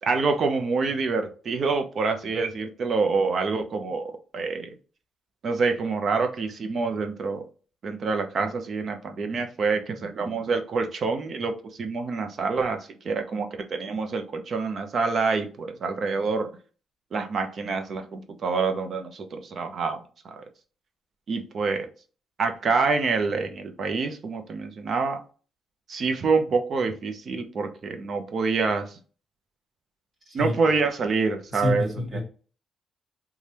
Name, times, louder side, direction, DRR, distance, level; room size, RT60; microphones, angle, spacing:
voice 1, 0.0-4.8 5.4-7.5 7.8-16.5 17.1-20.0 21.3-21.9 22.4-25.2 25.9-29.0 30.3-31.9 32.1-32.2, right 4 dB, 50° right, 0.7 m, -26 dB
voice 2, 31.5-32.2, left 2 dB, 35° right, 1.7 m, -28 dB
3.3 x 2.4 x 4.1 m
cardioid pair, 90°, 0 cm